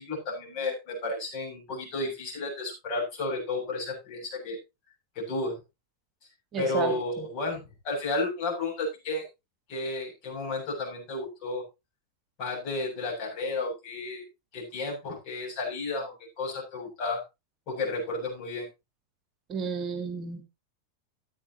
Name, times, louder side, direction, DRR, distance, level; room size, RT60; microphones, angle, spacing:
voice 1, 0.0-4.6 5.2-5.6 6.6-9.3 9.7-11.6 12.4-14.2 14.5-17.2 17.7-18.7, left 2 dB, 40° left, 0 dB, 7.6 m, -32 dB
voice 2, 6.5-6.9 19.5-20.4, right 7 dB, 30° right, 7 dB, 1.8 m, -30 dB
14.5 x 9.8 x 3.0 m, 0.25 s
figure-of-eight pair, 90°, 0 cm